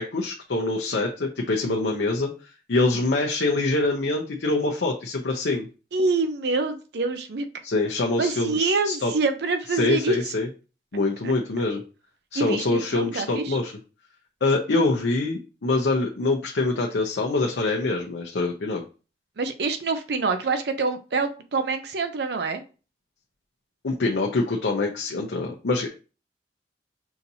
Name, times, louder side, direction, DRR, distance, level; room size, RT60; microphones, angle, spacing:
voice 1, 0.0-2.3 2.7-5.7 7.6-9.1 9.8-10.5 10.9-11.8 12.3-13.7 14.4-18.8 23.8-25.9, left 2 dB, 80° left, 0 dB, 0.7 m, -25 dB
voice 2, 5.9-7.4 8.2-10.2 11.2-11.3 12.3-13.6 19.4-22.6, right 3 dB, 65° right, 8 dB, 0.5 m, -26 dB
5.7 x 2.8 x 2.7 m, 0.33 s
head